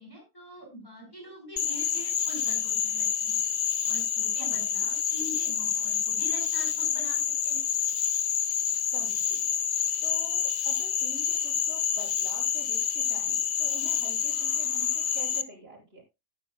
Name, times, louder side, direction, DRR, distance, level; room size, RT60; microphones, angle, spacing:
voice 1, 0.0-3.4 3.8-7.7, equal, 15° left, 1 dB, 4.8 m, -44 dB
Frog, 1.6-15.4, left 8 dB, 55° left, 1.0 m, -28 dB
voice 2, 8.9-9.5 10.0-16.0, right 2 dB, 45° right, -1 dB, 6.5 m, -46 dB
15.5 x 11.5 x 2.2 m, 0.23 s
omnidirectional pair, 1.5 m